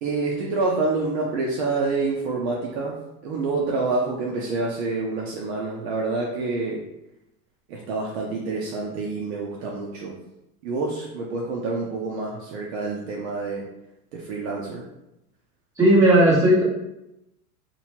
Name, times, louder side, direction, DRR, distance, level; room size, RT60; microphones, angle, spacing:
voice 1, 0.0-3.0 3.2-6.8 7.7-10.2 10.6-13.6 14.1-14.9, right 3 dB, 45° right, -2 dB, 0.5 m, -27 dB
voice 2, 15.8-16.6, right 1 dB, 5° right, -8 dB, 0.7 m, -15 dB
2.7 x 2.2 x 2.8 m, 0.88 s
supercardioid pair, 140°, 47 cm